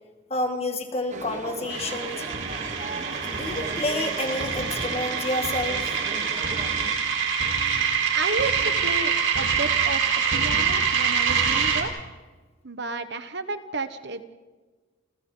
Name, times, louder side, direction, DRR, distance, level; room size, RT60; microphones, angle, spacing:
voice 1, 0.3-2.2 3.2-5.9, left 2 dB, 30° left, 4 dB, 2.1 m, -29 dB
sound 1, 1.1-6.9, right 2 dB, 35° right, 1.3 m, -37 dB
sound 2, 1.7-11.8, right 6 dB, 70° right, 3.9 m, -25 dB
voice 2, 8.1-10.0 10.3-11.9 12.6-14.2, right 3 dB, 55° right, 10 dB, 1.2 m, -32 dB
29.5 x 29.5 x 3.9 m, 1.3 s
head